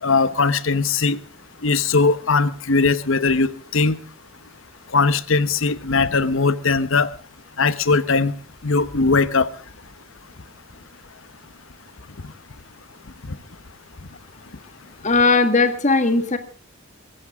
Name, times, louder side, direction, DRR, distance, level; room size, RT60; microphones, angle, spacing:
voice 1, 0.0-1.2 1.6-4.0 4.9-7.1 7.6-8.3 8.6-9.5 12.2-12.3 13.3-13.4, left 4 dB, 75° left, 15 dB, 1.0 m, -19 dB
voice 2, 15.0-16.4, left 3 dB, 35° left, 9 dB, 1.9 m, -17 dB
23.5 x 14.5 x 3.6 m, 0.38 s
head